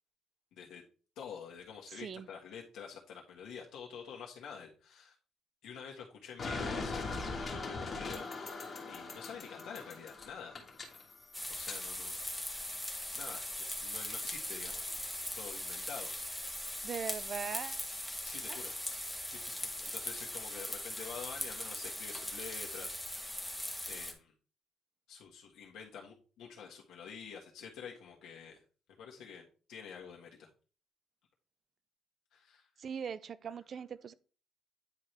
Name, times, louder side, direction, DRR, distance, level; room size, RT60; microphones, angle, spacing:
voice 1, 0.5-0.8 1.2-5.1 5.6-10.6 11.5-12.2 13.1-14.9 15.2-16.1 18.2-18.7 19.3-23.5 23.8-24.3 25.1-28.6 29.0-30.5 32.3-32.7, left 7 dB, 70° left, 1.4 m, -48 dB
voice 2, 1.9-2.3 16.8-17.8 18.5-18.6 32.8-34.1, right 7 dB, 35° right, 0.4 m, -40 dB
sound 1, 6.4-11.8, left 3 dB, 25° left, 1.4 m, -41 dB
sound 2, 11.3-24.1, left 1 dB, ahead, 1.0 m, -40 dB
9.6 x 4.4 x 3.2 m
cardioid pair, 165°, 0 cm